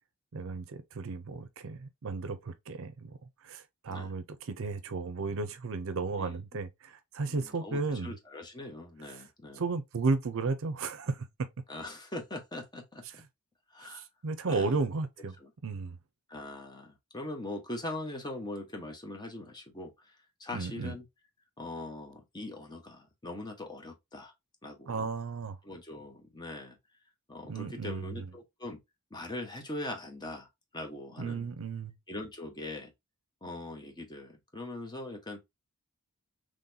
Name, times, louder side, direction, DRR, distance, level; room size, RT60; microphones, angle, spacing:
voice 1, 0.3-3.2 3.4-8.1 9.1-9.2 9.6-11.5 13.8-15.4 15.6-16.0 20.5-20.9 24.9-25.6 27.5-28.3 31.2-31.9, right 3 dB, 60° right, 0.6 m, -34 dB
voice 2, 7.2-9.6 11.7-13.2 13.7-14.0 14.5-14.8 15.4-15.5 16.3-21.0 21.6-24.3 24.6-25.1 25.6-26.8 27.3-28.8 29.1-31.5 32.1-32.9 33.4-35.4, left 1 dB, 20° left, 0.9 m, -41 dB
3.9 x 3.1 x 2.7 m
head